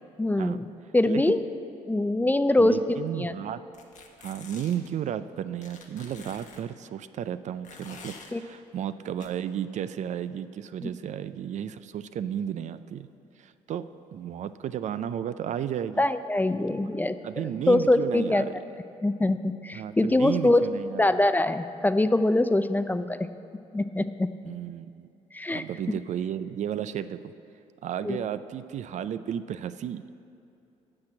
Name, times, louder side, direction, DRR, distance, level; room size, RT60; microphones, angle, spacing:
voice 1, 0.2-1.4 1.9-3.3 8.3-8.4 10.8-10.9 16.0-17.2 17.7-18.4 19.0-20.6 21.0-23.3 23.7-24.3 25.3-26.0 28.0-28.2, left 2 dB, 10° left, 11 dB, 0.4 m, -24 dB
voice 2, 2.6-3.6 4.2-13.1 13.4-13.9 14.1-16.0 16.8-16.9 17.2-18.5 19.7-21.2 24.4-25.1 25.5-27.3 27.8-30.0, right 9 dB, 60° right, 13 dB, 0.4 m, -33 dB
sound 1, 3.7-4.9 5.6-6.6 7.6-8.3 9.2-9.3, left 5 dB, 60° left, 1.1 m, -47 dB
8.7 x 5.9 x 7.6 m, 2.7 s
supercardioid pair, 70°, 14 cm